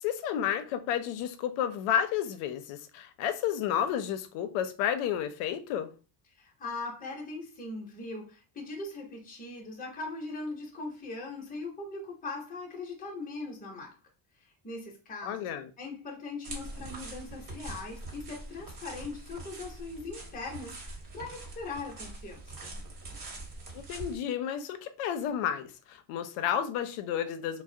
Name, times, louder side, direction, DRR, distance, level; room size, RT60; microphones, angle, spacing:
voice 1, 0.0-5.9 15.2-15.7 23.7-27.6, left 9 dB, 85° left, 0.6 m, -31 dB
voice 2, 6.4-13.9 14.6-15.5 15.8-22.7, left 3 dB, 15° left, 0.7 m, -40 dB
sound 1, 16.4-24.2, right 2 dB, 45° right, 1.1 m, -43 dB
2.3 x 2.1 x 2.6 m
cardioid pair, 105°, 49 cm